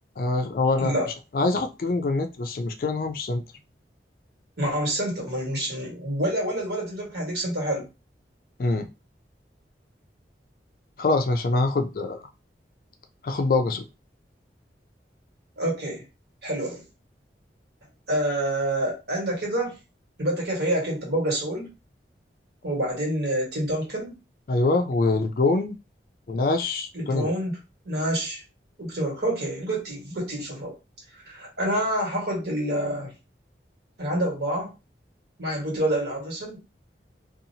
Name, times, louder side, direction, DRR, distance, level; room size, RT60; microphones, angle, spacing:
voice 1, 0.2-0.9 1.3-3.4 8.6-8.9 11.0-12.2 13.2-13.8 24.5-25.8 26.3-27.3, left 3 dB, 50° left, 0.4 m, -24 dB
voice 2, 4.6-7.9 15.6-16.0 16.4-16.8 18.1-19.7 20.2-21.7 22.6-24.1 26.9-27.5 27.8-28.4 28.8-30.7 31.3-33.1 34.0-34.7 35.4-36.6, right 1 dB, 70° right, 1.4 m, -27 dB
2.6 x 2.4 x 2.7 m
head